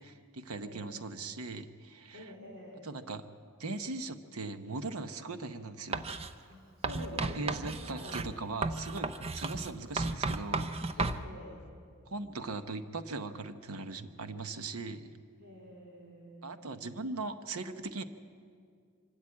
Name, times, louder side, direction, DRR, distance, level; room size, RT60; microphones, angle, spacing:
voice 1, 0.0-2.3 2.8-3.2 3.6-6.1 7.2-11.0 12.1-15.1 16.4-18.0, right 3 dB, 85° right, 9 dB, 0.9 m, -40 dB
voice 2, 0.5-0.9 2.1-2.9 6.5-8.2 11.0-11.6 15.4-16.7, equal, 65° right, -6 dB, 3.9 m, -47 dB
Writing, 5.9-6.3 6.8-11.2, right 3 dB, 30° right, 0.6 m, -34 dB
25.0 x 13.0 x 8.5 m, 2.2 s
head